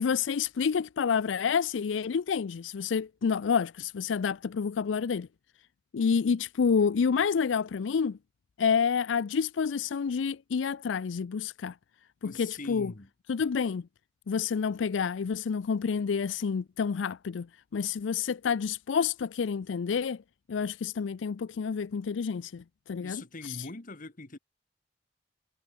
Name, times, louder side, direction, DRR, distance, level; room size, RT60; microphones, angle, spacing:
voice 1, 0.0-5.3 5.9-8.2 8.6-11.8 12.2-12.9 13.3-13.8 14.3-17.5 17.7-20.2 20.5-23.7, left 6 dB, 85° left, 0.4 m, -29 dB
voice 2, 12.2-13.1 23.0-24.4, left 3 dB, 45° left, 1.7 m, -42 dB
head